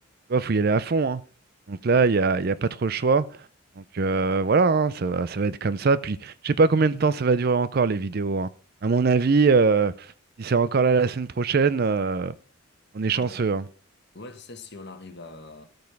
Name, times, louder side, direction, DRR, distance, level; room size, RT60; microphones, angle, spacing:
voice 1, 0.3-1.2 1.7-3.3 3.8-8.5 8.8-10.1 10.4-12.3 12.9-13.6, right 4 dB, 45° right, 0.4 m, -22 dB
voice 2, 14.1-15.6, left 2 dB, 50° left, 1.6 m, -42 dB
13.0 x 5.3 x 5.8 m
head